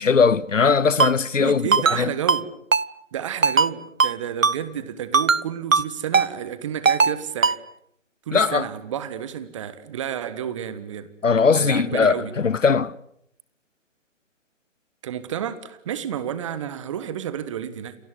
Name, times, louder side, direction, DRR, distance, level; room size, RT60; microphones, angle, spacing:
voice 1, 0.0-2.1 8.3-8.7 11.2-12.9, left 5 dB, 75° left, 1.0 m, -20 dB
Ringtone, 1.0-1.1 1.7-2.0 2.3-2.4 2.7-2.8 3.4-3.7 4.0-4.1 4.4-4.6 5.1-5.4 5.7-5.8 6.1-6.3 6.8-7.1 7.4-7.6, right 5 dB, 85° right, 1.0 m, -18 dB
voice 2, 1.4-2.4 3.1-7.6 8.3-11.1 11.5-12.3 15.0-17.9, right 9 dB, 25° right, 1.5 m, -31 dB
29.0 x 20.0 x 8.1 m
figure-of-eight pair, 145°, 38 cm